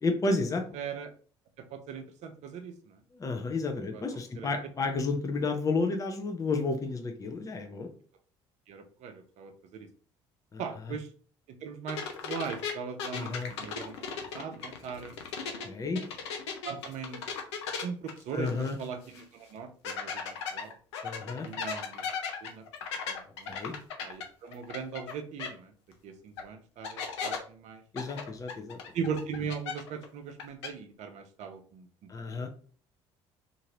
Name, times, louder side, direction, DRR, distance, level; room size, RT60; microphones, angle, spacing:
voice 1, 0.0-0.6 3.1-7.9 10.5-10.6 13.1-13.5 15.6-16.0 18.3-18.8 21.0-21.5 23.5-23.7 27.9-28.8 32.1-32.5, left 3 dB, 25° left, 5 dB, 0.6 m, -31 dB
voice 2, 0.7-1.1 1.7-3.0 3.9-4.0 4.4-4.5 8.7-9.9 10.6-11.1 11.6-15.2 16.6-17.2 17.8-20.8 21.4-22.0 22.4-22.6 23.1-23.6 24.0-25.7 26.0-27.8 28.9-32.1, right 6 dB, 55° right, 6 dB, 0.5 m, -39 dB
sound 1, 11.9-15.7 15.9-18.8 19.1-19.2 19.8-25.1 25.4-25.5 26.4-26.5 26.8-27.4 28.0-30.0 30.3-30.7, left 6 dB, 80° left, 0.5 m, -36 dB
2.8 x 2.5 x 2.9 m, 0.43 s
hypercardioid pair, 55°, 15 cm